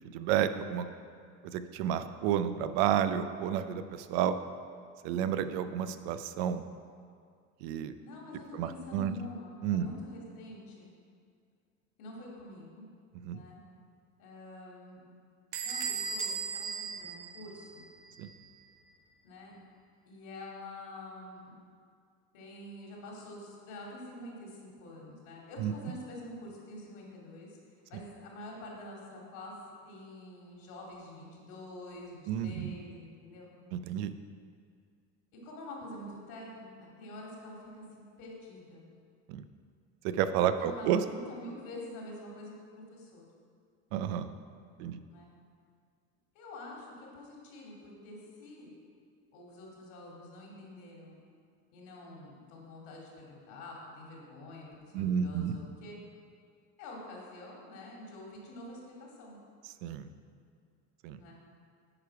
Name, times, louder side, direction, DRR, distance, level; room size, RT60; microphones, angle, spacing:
voice 1, 0.1-0.9 1.4-4.4 5.0-6.6 7.6-7.9 8.5-9.1 9.6-9.9 13.2-13.4 18.2-18.3 25.6-25.7 32.3-32.7 33.7-34.1 39.3-39.4 40.1-41.0 43.9-44.3 44.8-45.0 54.9-55.6 59.8-60.1 61.0-61.2, right 9 dB, 85° right, 11 dB, 0.6 m, -31 dB
voice 2, 8.0-10.9 12.0-12.9 13.3-13.6 14.2-15.1 15.6-17.9 19.2-19.6 20.1-21.6 22.3-27.6 27.9-29.5 29.8-33.5 35.3-38.9 40.4-43.3 45.1-45.3 46.3-48.7 49.3-51.2 51.7-56.0 56.8-59.4 61.2-61.3, left 1 dB, 65° left, -2 dB, 2.3 m, -47 dB
Bell / Door, 15.5-18.0, right 5 dB, 60° right, 1.1 m, -37 dB
9.7 x 5.0 x 4.7 m, 2.2 s
cardioid pair, 130°, 33 cm